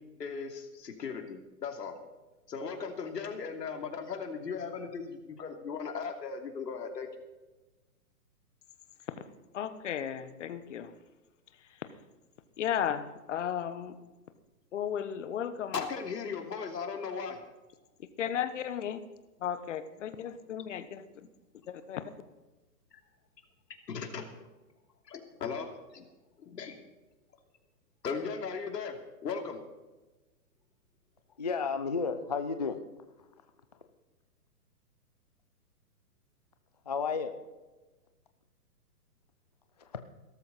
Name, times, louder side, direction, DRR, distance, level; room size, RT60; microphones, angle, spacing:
voice 1, 0.2-1.9 2.5-7.1 15.7-17.4 23.9-24.3 25.1-26.1 26.5-26.8 28.0-28.9 29.2-29.6, left 5 dB, 75° left, 4 dB, 2.9 m, -37 dB
voice 2, 9.5-10.9 12.6-14.0 14.7-15.9 18.2-19.0 19.4-21.0 21.7-22.1, left 9 dB, 45° left, 11 dB, 1.2 m, -34 dB
voice 3, 31.4-32.8 36.9-37.3 39.8-39.9, left 5 dB, 25° left, 8 dB, 0.4 m, -32 dB
17.5 x 13.5 x 4.2 m, 1.2 s
hypercardioid pair, 160°, 49 cm